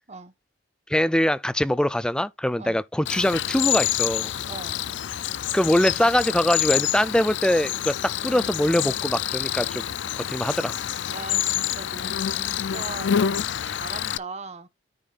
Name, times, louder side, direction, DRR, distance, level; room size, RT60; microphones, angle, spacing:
voice 1, 0.9-4.3 5.5-9.8 10.2-10.8, left 1 dB, 5° left, 0.4 m, -23 dB
Cricket, 3.1-14.2, left 10 dB, 75° left, 0.4 m, -27 dB
voice 2, 4.5-4.8 11.1-13.1 13.4-14.7, right 3 dB, 40° right, 1.2 m, -39 dB
14.0 x 5.2 x 2.5 m
head